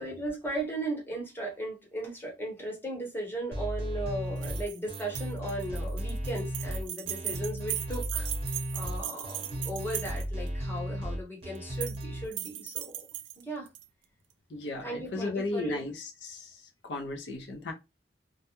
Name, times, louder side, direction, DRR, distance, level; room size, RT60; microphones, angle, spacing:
voice 1, 0.0-8.3 8.7-12.9 13.5-13.7 14.8-15.8, right 1 dB, 10° left, 0.8 m, -36 dB
sound 1, 3.5-12.2, equal, 35° right, 0.8 m, -35 dB
sound 2, 4.4-10.5 11.6-12.0 12.3-13.8, right 12 dB, 80° right, 0.3 m, -38 dB
voice 2, 14.5-16.6 16.8-17.7, left 2 dB, 70° left, 0.5 m, -35 dB
2.3 x 2.1 x 2.8 m
head